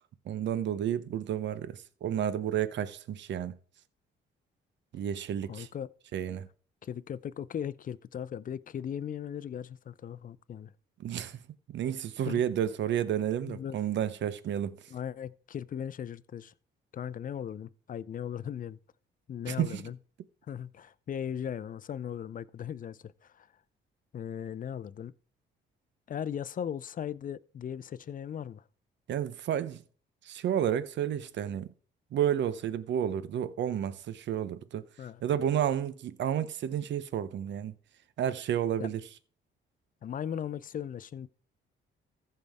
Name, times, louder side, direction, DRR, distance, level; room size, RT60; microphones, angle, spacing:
voice 1, 0.3-3.6 4.9-5.7 6.1-6.5 11.0-11.4 11.7-14.8 19.5-19.8 29.1-29.8 30.2-31.7 32.1-34.9 35.2-37.7 38.2-39.0, right 10 dB, 65° right, 0.8 m, -31 dB
voice 2, 5.5-5.9 6.8-10.7 12.3-12.4 13.4-13.8 14.9-16.5 16.9-18.8 19.3-20.0 20.5-23.5 24.1-25.1 26.1-28.6 35.0-35.2 38.8-38.9 40.0-41.3, left 9 dB, 45° left, 0.6 m, -38 dB
14.5 x 5.5 x 3.5 m
cardioid pair, 90°, 20 cm